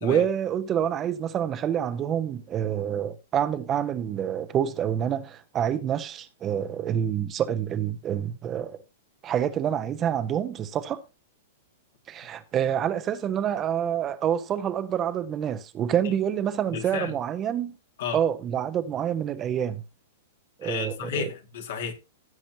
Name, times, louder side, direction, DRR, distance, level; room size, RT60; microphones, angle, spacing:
voice 1, 0.0-8.8 9.2-11.0 12.1-17.7 18.1-19.8 20.6-21.3, right 9 dB, 30° right, 1.0 m, -27 dB
voice 2, 16.7-17.1 18.0-18.2 20.6-21.9, left 7 dB, 60° left, 2.2 m, -32 dB
15.5 x 7.3 x 2.9 m
figure-of-eight pair, 105°, 0 cm